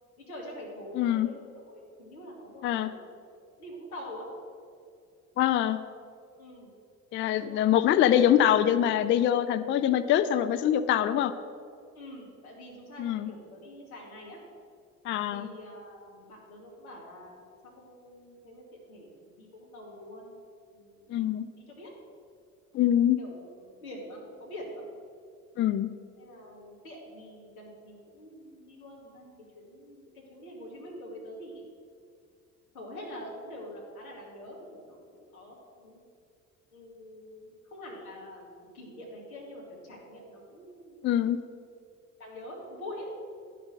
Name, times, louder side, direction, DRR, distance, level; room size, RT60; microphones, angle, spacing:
voice 1, 0.2-1.4 1.7-3.0 3.6-4.3 6.3-6.7 7.4-8.0 11.9-14.4 15.3-20.4 20.7-21.1 21.5-21.9 23.2-24.8 26.2-31.6 32.7-36.0 36.7-41.5 42.2-43.0, left 1 dB, 80° left, -3 dB, 2.2 m, -45 dB
voice 2, 0.9-1.3 2.6-2.9 5.4-5.8 7.1-11.3 13.0-13.3 15.0-15.5 21.1-21.5 22.7-23.2 25.6-25.9 41.0-41.4, left 11 dB, 30° left, 12 dB, 0.4 m, -24 dB
10.0 x 5.8 x 6.5 m, 2.3 s
figure-of-eight pair, 55°, 43 cm